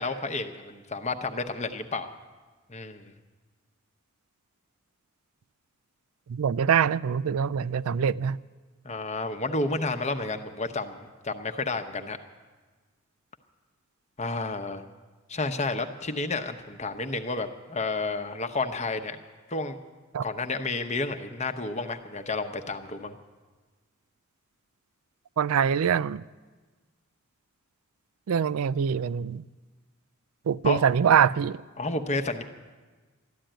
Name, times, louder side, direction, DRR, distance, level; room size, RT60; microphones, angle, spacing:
voice 1, 0.0-2.1 2.7-3.1 8.8-12.2 14.2-14.8 15.3-19.2 19.5-19.8 20.2-23.2 30.6-30.8 31.8-32.4, left 3 dB, 30° left, 0.9 m, -31 dB
voice 2, 6.3-8.4 20.1-20.2 25.4-26.2 28.3-29.5 30.5-31.6, right 7 dB, 85° right, 0.4 m, -24 dB
13.5 x 11.5 x 9.0 m
head